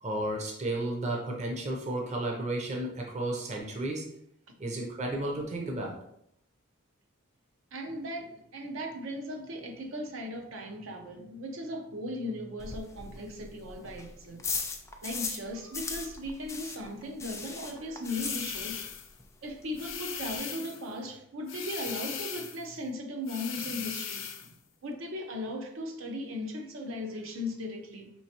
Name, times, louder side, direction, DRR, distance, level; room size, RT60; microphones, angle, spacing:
voice 1, 0.0-4.0 4.6-6.0, right 1 dB, 35° right, 0 dB, 0.6 m, -33 dB
voice 2, 7.7-14.4 15.0-18.8 19.4-24.5 24.8-28.1, left 1 dB, 75° right, 2 dB, 0.7 m, -37 dB
sound 1, 12.6-15.5 15.7-18.9 19.2-19.3 19.6-19.7 19.9-20.4, left 4 dB, 15° left, 0.3 m, -37 dB
sound 2, 18.0-19.1 19.8-20.9 21.5-22.7 23.3-24.5, left 8 dB, 70° left, 0.6 m, -38 dB
4.5 x 3.2 x 2.9 m, 0.74 s
head